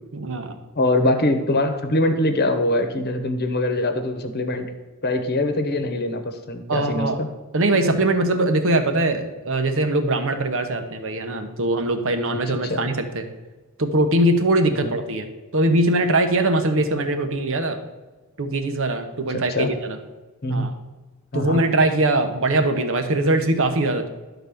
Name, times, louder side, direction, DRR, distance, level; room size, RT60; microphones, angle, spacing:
voice 1, 0.1-0.5 6.7-7.2 7.5-13.3 13.8-17.8 18.4-20.0 20.5-20.7 21.3-24.1, right 2 dB, 65° right, 6 dB, 1.1 m, -21 dB
voice 2, 0.7-4.7 5.0-7.3 12.5-12.9 14.7-14.9 19.3-19.7 20.4-20.7 21.3-21.6, left 1 dB, 50° left, 8 dB, 1.0 m, -23 dB
12.0 x 4.0 x 6.9 m, 1.2 s
head